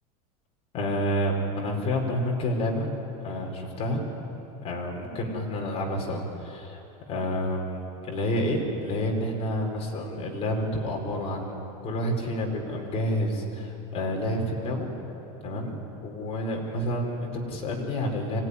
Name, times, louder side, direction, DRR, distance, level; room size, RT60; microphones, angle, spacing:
voice 1, 0.7-2.9 3.2-4.0 4.6-6.8 7.1-11.6 11.8-14.9 15.4-18.4, equal, 30° left, 1 dB, 4.8 m, -29 dB
25.5 x 17.0 x 10.0 m, 3.0 s
supercardioid pair, 150°, 19 cm